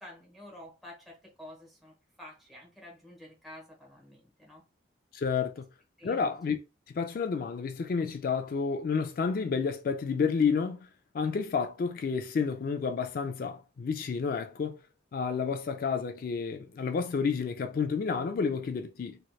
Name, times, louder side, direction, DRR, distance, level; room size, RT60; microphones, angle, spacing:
voice 1, 0.0-4.6 6.0-6.2, left 1 dB, ahead, 1.0 m, -50 dB
voice 2, 5.1-5.7 6.0-6.6 6.9-10.9 11.1-14.8 15.1-19.2, left 5 dB, 50° left, 0.3 m, -30 dB
3.2 x 2.9 x 2.2 m
head